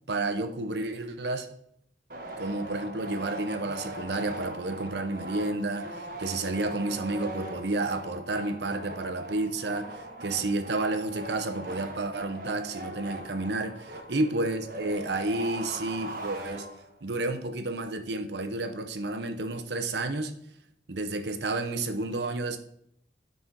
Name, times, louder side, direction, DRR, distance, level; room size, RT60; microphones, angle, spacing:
voice 1, 0.1-1.5 2.4-16.7 17.0-20.3 20.9-22.6, right 2 dB, 75° right, 7 dB, 0.8 m, -31 dB
sound 1, 2.1-17.1, right 1 dB, 50° right, 1.2 m, -40 dB
9.5 x 4.2 x 4.6 m, 0.71 s
head